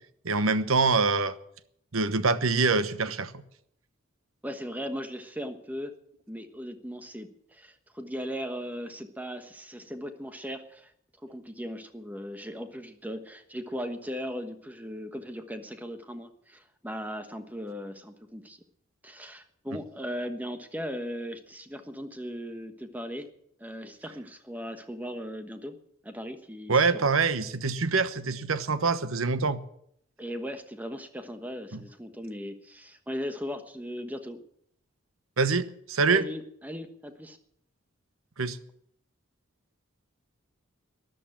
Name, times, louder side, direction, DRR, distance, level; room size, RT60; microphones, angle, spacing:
voice 1, 0.2-1.4 1.9-3.4 26.7-29.6 31.7-31.8 35.4-36.3 38.4-38.6, right 4 dB, 80° right, 1.1 m, -25 dB
voice 2, 4.4-5.9 6.3-10.9 11.3-18.6 19.0-23.3 23.6-25.8 26.0-27.1 30.2-34.4 36.1-37.4, equal, 10° right, 1.2 m, -38 dB
13.0 x 10.5 x 8.8 m
head